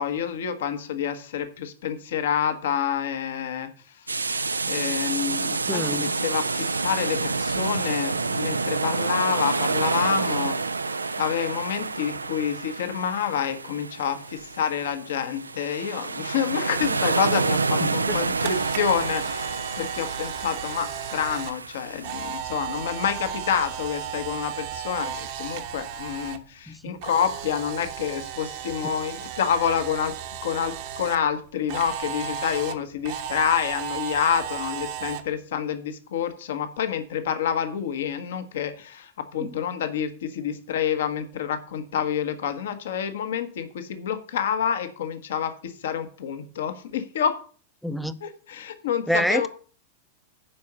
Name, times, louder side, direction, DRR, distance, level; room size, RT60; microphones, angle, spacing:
voice 1, 0.0-3.7 4.1-10.6 11.2-30.1 30.4-47.4 48.2-49.5, left 8 dB, 60° left, 1.2 m, -28 dB
sound 1, 4.1-22.4, right 4 dB, 80° right, 0.4 m, -28 dB
voice 2, 5.7-6.1 17.8-18.2 26.7-27.0 28.8-28.9 39.4-39.5 47.8-48.2 49.1-49.5, equal, ahead, 0.7 m, -27 dB
Camera, 18.0-26.4 26.7-31.2 31.7-35.2, right 9 dB, 50° right, 1.1 m, -35 dB
10.0 x 4.7 x 6.7 m
figure-of-eight pair, 90°, 0 cm